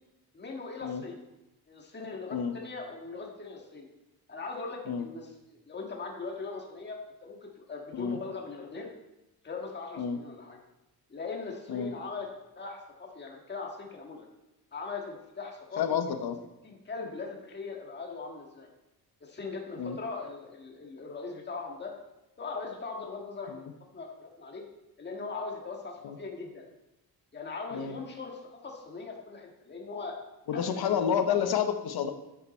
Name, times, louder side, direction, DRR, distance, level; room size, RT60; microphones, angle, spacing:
voice 1, 0.3-1.2 1.7-3.9 4.3-8.9 9.4-10.6 11.1-12.3 12.5-14.3 14.7-15.8 16.1-16.2 16.6-18.7 19.2-21.9 22.4-23.6 23.9-24.6 25.0-26.6 27.3-30.2 30.5-31.4, left 4 dB, 25° left, 0 dB, 1.7 m, -40 dB
voice 2, 15.8-16.4 19.8-20.0 26.0-26.2 27.7-27.9 30.5-32.1, left 7 dB, 70° left, 7 dB, 1.0 m, -29 dB
11.5 x 7.0 x 4.3 m, 0.95 s
wide cardioid pair, 160°, 40 cm